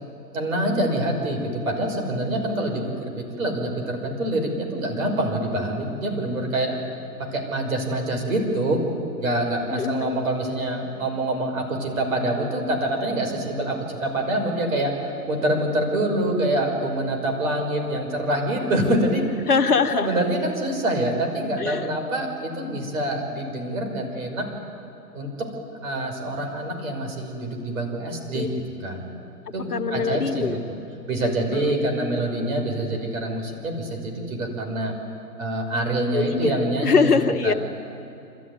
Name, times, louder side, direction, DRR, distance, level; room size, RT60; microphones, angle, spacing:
voice 1, 0.3-6.8 7.3-8.8 9.2-19.2 20.0-24.4 25.1-25.5 25.8-28.5 28.8-29.0 29.5-30.6 31.1-34.9 35.4-37.2 37.4-37.6, right 1 dB, 55° right, 3 dB, 5.7 m, -25 dB
voice 2, 9.7-10.2 19.5-20.2 21.6-21.9 28.3-28.5 29.7-30.6 31.5-31.6 36.1-36.5 36.8-37.5, left 5 dB, 65° left, 7 dB, 1.6 m, -22 dB
26.0 x 14.0 x 9.5 m, 2.7 s
figure-of-eight pair, 130°, 50 cm